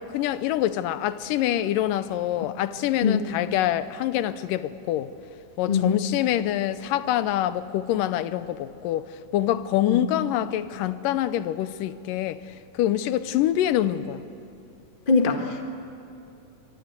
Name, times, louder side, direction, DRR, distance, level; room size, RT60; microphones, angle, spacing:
voice 1, 0.1-5.1 5.6-12.4 12.7-14.2, left 12 dB, 85° left, 14 dB, 2.4 m, -25 dB
voice 2, 5.7-6.0 9.9-10.0 15.1-15.6, left 5 dB, 65° left, 5 dB, 0.5 m, -22 dB
23.5 x 23.0 x 8.2 m, 2.6 s
omnidirectional pair, 3.8 m